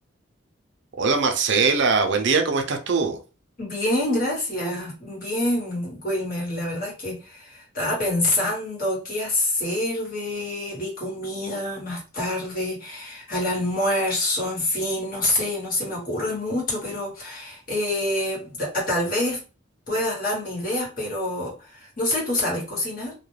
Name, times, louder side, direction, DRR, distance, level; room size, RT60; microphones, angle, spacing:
voice 1, 1.0-3.2, right 4 dB, 55° right, 0.4 m, -21 dB
voice 2, 3.6-19.4 19.9-23.1, left 1 dB, 45° left, 1.2 m, -26 dB
2.3 x 2.2 x 3.1 m
head